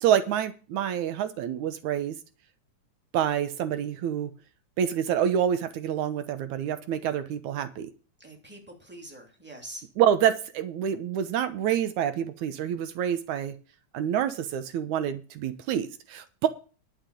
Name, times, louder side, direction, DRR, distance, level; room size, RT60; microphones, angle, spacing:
voice 1, 0.0-2.2 3.1-4.3 4.8-7.9 10.0-13.6 13.9-16.5, right 9 dB, 85° right, 11 dB, 2.5 m, -27 dB
voice 2, 8.2-9.9, right 1 dB, 5° right, 2 dB, 2.6 m, -44 dB
11.5 x 5.9 x 8.3 m, 0.35 s
omnidirectional pair, 3.3 m